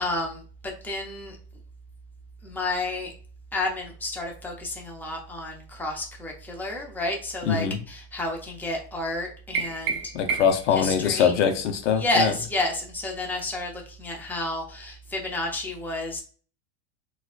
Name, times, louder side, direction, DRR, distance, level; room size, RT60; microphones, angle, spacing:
voice 1, 0.0-1.4 2.4-3.1 3.5-10.0 10.7-11.3 11.9-16.2, left 2 dB, 5° left, 0.6 m, -30 dB
voice 2, 7.4-7.8 10.1-12.3, left 7 dB, 80° left, 0.7 m, -23 dB
sound 1, 9.5-10.7, right 5 dB, 30° right, 0.6 m, -30 dB
4.1 x 2.3 x 2.4 m
supercardioid pair, 125°, 35 cm